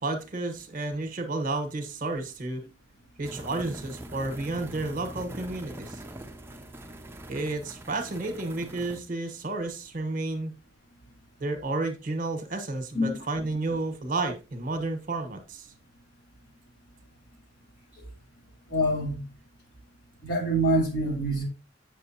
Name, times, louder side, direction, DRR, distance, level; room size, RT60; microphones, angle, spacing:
voice 1, 0.0-2.6 3.2-6.0 7.3-10.5 11.4-15.7, right 2 dB, 45° right, 1.1 m, -31 dB
sound 1, 3.2-9.0, right 1 dB, 10° right, 0.6 m, -42 dB
voice 2, 18.7-19.2 20.2-21.4, right 1 dB, 65° left, 3.6 m, -25 dB
7.8 x 6.4 x 2.8 m
head